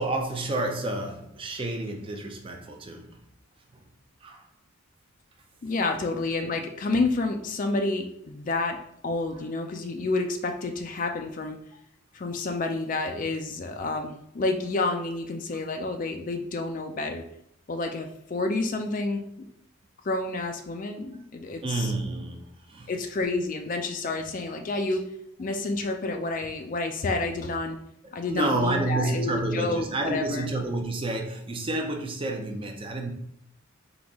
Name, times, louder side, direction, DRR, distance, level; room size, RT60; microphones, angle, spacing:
voice 1, 0.0-3.2 3.7-3.9 4.2-4.5 5.6-5.7 21.6-22.9 28.3-33.1, right 2 dB, 25° right, 2 dB, 0.5 m, -30 dB
voice 2, 5.6-8.8 9.0-11.6 12.1-17.2 17.7-19.3 20.0-21.9 22.9-25.0 25.4-27.8 28.1-30.5, left 3 dB, 40° left, 5 dB, 0.4 m, -29 dB
3.9 x 2.9 x 3.5 m, 0.75 s
head